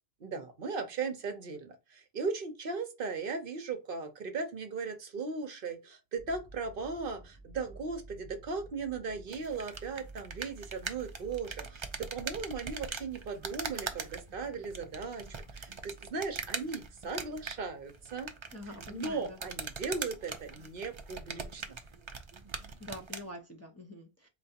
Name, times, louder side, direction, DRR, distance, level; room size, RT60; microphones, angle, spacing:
voice 1, 0.2-15.3 15.5-18.3 18.9-21.8, right 4 dB, 60° right, 0.9 m, -37 dB
sound 1, 6.2-22.5, right 2 dB, 85° left, 2.1 m, -54 dB
sound 2, 9.3-23.3, right 5 dB, 35° right, 0.5 m, -42 dB
voice 2, 18.5-19.4 22.8-24.3, equal, 15° left, 0.7 m, -45 dB
4.5 x 3.3 x 2.7 m
omnidirectional pair, 1.1 m